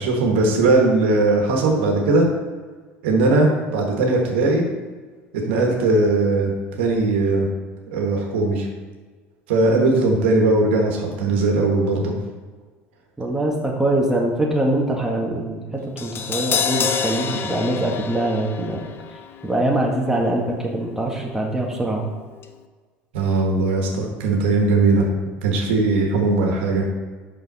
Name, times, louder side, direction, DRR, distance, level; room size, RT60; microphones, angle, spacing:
voice 1, 0.0-2.2 3.0-4.6 5.5-6.5 6.8-7.5 7.9-8.7 9.5-12.1 23.1-25.1 25.4-26.8, right 3 dB, 80° right, 1 dB, 1.3 m, -19 dB
voice 2, 13.2-18.8 19.4-22.1, right 1 dB, 5° right, -2 dB, 1.5 m, -23 dB
Crash cymbal, 16.0-22.1 22.4-22.5, left 6 dB, 40° left, 0.5 m, -29 dB
5.8 x 5.7 x 4.0 m, 1.4 s
hypercardioid pair, 85°, 6 cm